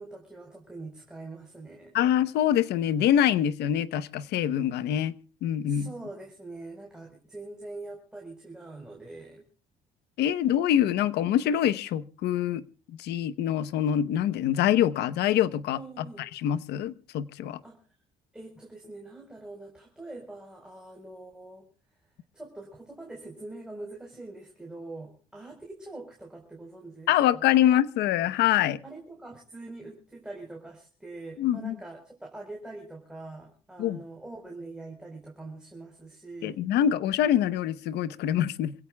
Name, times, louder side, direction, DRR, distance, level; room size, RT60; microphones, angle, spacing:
voice 1, 0.0-1.9 5.7-9.4 15.8-16.3 17.6-17.8 18.3-21.7 22.3-27.6 28.8-36.7, right 2 dB, 5° right, 4.3 m, -43 dB
voice 2, 1.9-5.1 5.4-5.9 10.2-12.6 13.0-16.0 16.3-17.6 27.1-28.8 31.4-31.7 33.8-34.0 36.4-38.7, left 11 dB, 80° left, 1.0 m, -25 dB
27.0 x 17.0 x 2.3 m
cardioid pair, 110°, 17 cm